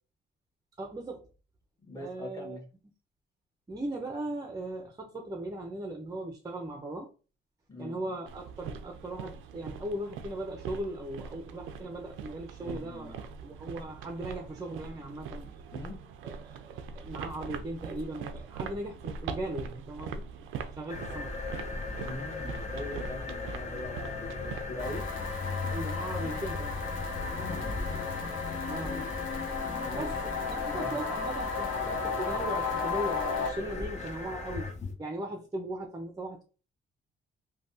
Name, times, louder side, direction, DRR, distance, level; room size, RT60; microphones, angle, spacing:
voice 1, 0.8-1.3 2.0-2.6 3.7-7.1 7.8-15.5 16.2-20.2 20.8-21.3 25.6-26.7 28.7-29.1 29.9-34.7 35.0-36.4, right 1 dB, 20° right, 0.6 m, -38 dB
voice 2, 1.8-2.6 7.7-8.0 12.6-13.2 15.7-16.0 22.0-25.1 27.3-27.8 29.6-31.0, left 1 dB, 15° left, 1.4 m, -42 dB
sound 1, 8.3-24.7, right 6 dB, 90° right, 0.4 m, -42 dB
sound 2, 20.9-34.9, left 3 dB, 35° left, 0.8 m, -37 dB
sound 3, 24.8-33.5, left 4 dB, 75° left, 0.9 m, -34 dB
3.3 x 2.3 x 2.6 m
cardioid pair, 90°, 20 cm